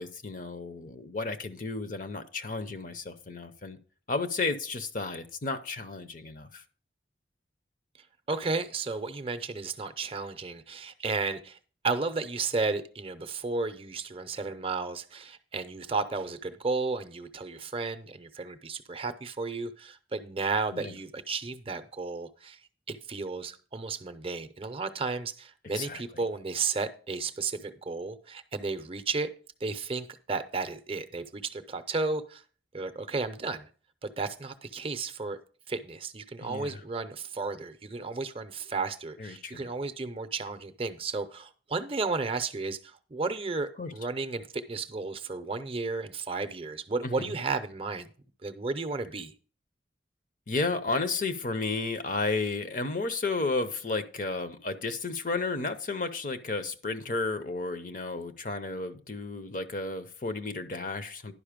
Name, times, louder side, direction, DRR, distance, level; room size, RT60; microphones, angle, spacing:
voice 1, 0.0-3.8 4.1-6.6 20.7-20.9 25.7-26.0 36.4-36.8 39.2-39.7 43.8-43.9 47.0-47.3 50.5-61.3, left 3 dB, 45° left, 10 dB, 0.7 m, -33 dB
voice 2, 8.3-11.6 11.8-22.6 22.9-29.3 29.6-32.4 32.7-33.7 34.0-35.4 35.7-48.1 48.4-49.3, right 4 dB, 30° right, 9 dB, 0.6 m, -33 dB
11.0 x 5.3 x 5.1 m, 0.41 s
head